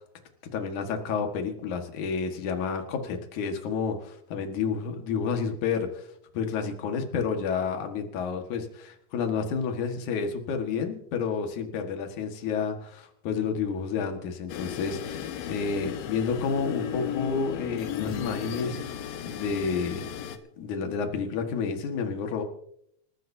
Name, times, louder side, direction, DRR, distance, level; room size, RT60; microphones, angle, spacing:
voice 1, 0.5-6.1 6.3-20.1 20.6-22.4, left 5 dB, 65° left, 5 dB, 3.0 m, -30 dB
sound 1, 14.5-20.4, left 9 dB, 80° left, 2.8 m, -35 dB
27.5 x 14.5 x 2.8 m, 0.73 s
omnidirectional pair, 4.0 m